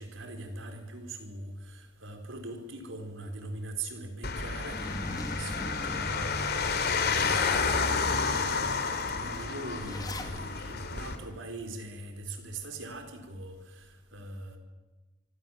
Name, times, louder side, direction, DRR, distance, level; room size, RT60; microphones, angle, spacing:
voice 1, 0.0-7.8 8.3-14.6, right 2 dB, 75° right, 4.9 m, -41 dB
sound 1, 4.2-11.2, left 4 dB, 55° left, 3.1 m, -30 dB
Zipper (clothing), 4.7-6.9 7.4-7.5 8.0-8.1 8.4-10.4, left 1 dB, 20° left, 2.1 m, -42 dB
25.0 x 25.0 x 7.6 m
head